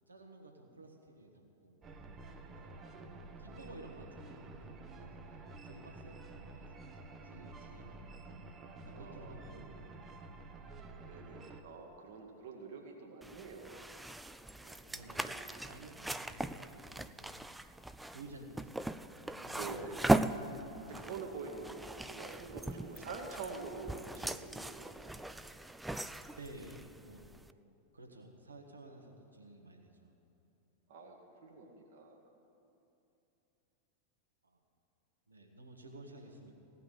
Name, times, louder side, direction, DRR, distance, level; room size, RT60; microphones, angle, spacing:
voice 1, 0.1-1.8 3.4-4.7 5.2-6.6 7.2-8.2 8.8-9.9 14.9-15.4 15.7-17.4 18.1-18.9 19.3-19.9 26.3-27.3 27.9-30.1 35.3-36.5, right 2 dB, 80° right, 2 dB, 1.6 m, -53 dB
sound 1, 1.8-11.6, right 2 dB, 25° right, 0.8 m, -50 dB
voice 2, 2.5-3.2 8.9-9.6 11.0-13.9 14.6-14.8 15.1-15.8 19.5-20.0 20.8-25.3 30.9-32.2, right 4 dB, 55° right, 0 dB, 1.5 m, -47 dB
sound 2, 13.2-27.5, right 2 dB, 5° right, 0.4 m, -39 dB
16.5 x 5.7 x 10.0 m, 2.9 s
figure-of-eight pair, 90°, 0 cm